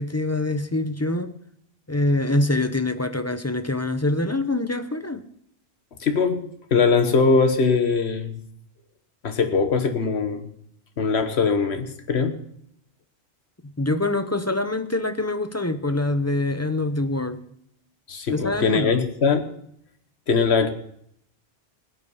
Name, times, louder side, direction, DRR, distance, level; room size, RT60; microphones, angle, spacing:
voice 1, 0.0-1.3 1.9-5.3 13.6-17.4 18.3-19.0, left 2 dB, 15° left, 9 dB, 0.7 m, -25 dB
voice 2, 6.0-6.4 6.7-8.4 9.2-10.5 11.0-12.3 18.1-19.5 20.3-20.7, left 5 dB, 75° left, 7 dB, 1.5 m, -21 dB
19.5 x 8.5 x 5.5 m, 0.71 s
omnidirectional pair, 1.1 m